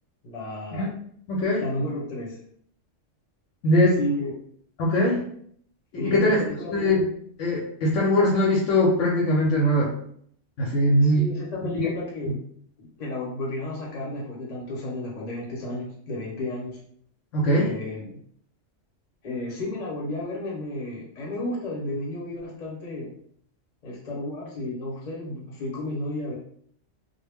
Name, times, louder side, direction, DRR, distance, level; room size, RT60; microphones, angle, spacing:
voice 1, 0.2-0.9 1.6-2.4 4.0-4.3 6.0-6.9 11.0-12.4 12.8-16.8 17.6-18.2 19.2-23.1 23.8-26.4, left 1 dB, 40° left, -4 dB, 0.8 m, -32 dB
voice 2, 1.3-1.6 3.6-4.0 4.8-5.3 5.9-6.4 6.7-7.0 7.4-9.9 10.6-11.3 11.8-11.9 17.3-17.7, left 1 dB, 80° left, -4 dB, 0.9 m, -21 dB
2.2 x 2.0 x 3.3 m, 0.63 s
omnidirectional pair, 1.3 m